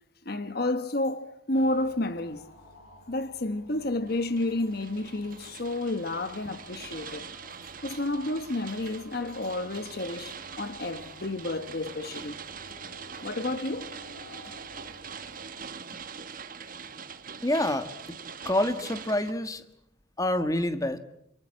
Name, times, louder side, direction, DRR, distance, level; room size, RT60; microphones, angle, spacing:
voice 1, 0.2-2.4 3.1-7.3 7.8-12.4 13.2-13.9, left 2 dB, 50° left, 1.2 m, -30 dB
sound 1, 1.5-15.5, left 1 dB, 90° left, 6.7 m, -53 dB
sound 2, 4.1-19.3, right 6 dB, 40° right, 1.4 m, -43 dB
voice 2, 17.4-17.9 18.4-19.6 20.2-21.0, left 1 dB, 15° left, 1.5 m, -27 dB
28.0 x 26.5 x 7.6 m
head